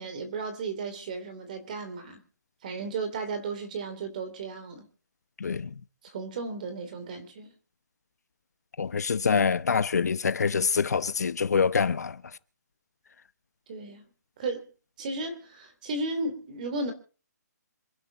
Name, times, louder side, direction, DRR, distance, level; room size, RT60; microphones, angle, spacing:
voice 1, 0.0-2.2 2.6-4.9 6.0-7.5 13.7-14.0 14.4-14.7 15.0-16.9, right 3 dB, 25° right, 3.1 m, -34 dB
voice 2, 5.4-5.7 8.8-12.2, left 5 dB, 65° left, 1.0 m, -25 dB
27.0 x 10.5 x 4.0 m
hypercardioid pair, 175°, 10 cm